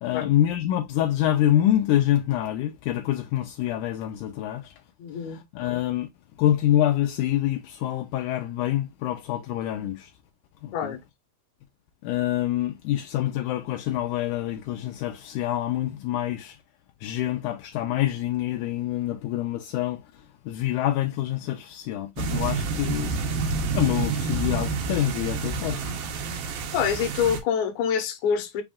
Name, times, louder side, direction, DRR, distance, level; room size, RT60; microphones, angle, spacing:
voice 1, 0.0-4.8 5.2-6.1 6.4-10.1 10.6-11.0 12.0-16.6 17.0-23.2 23.7-26.0, left 12 dB, 85° left, 1.8 m, -26 dB
voice 2, 5.0-5.4 10.7-11.0 26.7-28.6, left 7 dB, 70° left, 1.9 m, -26 dB
sound 1, 22.2-27.4, right 4 dB, 85° right, 2.8 m, -28 dB
5.9 x 2.4 x 3.5 m
omnidirectional pair, 4.1 m